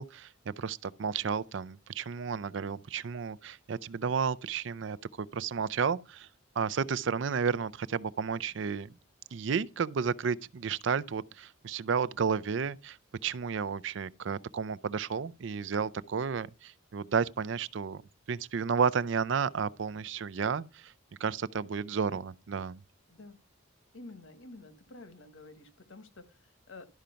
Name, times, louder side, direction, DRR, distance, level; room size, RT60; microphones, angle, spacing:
voice 1, 0.0-6.3 6.6-8.9 9.3-13.0 13.2-18.0 18.3-20.9 21.2-22.8, right 6 dB, 65° right, 0.4 m, -32 dB
voice 2, 23.9-26.9, left 2 dB, 75° left, 1.3 m, -50 dB
12.0 x 5.1 x 5.6 m
head